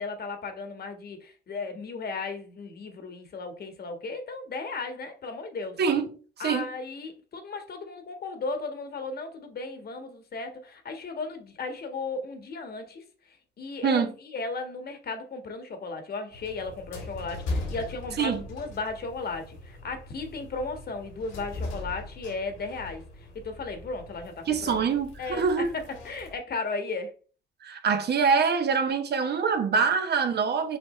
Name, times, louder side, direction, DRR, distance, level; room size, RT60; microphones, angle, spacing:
voice 1, 0.0-5.8 6.4-23.0 23.3-24.9 25.2-27.1, left 3 dB, 50° left, 1.5 m, -35 dB
sound 1, 16.3-26.3, left 2 dB, 85° left, 2.8 m, -40 dB
voice 2, 24.5-25.7 27.6-30.8, right 5 dB, 55° right, 1.1 m, -24 dB
6.9 x 4.9 x 3.2 m
cardioid pair, 90°, 20 cm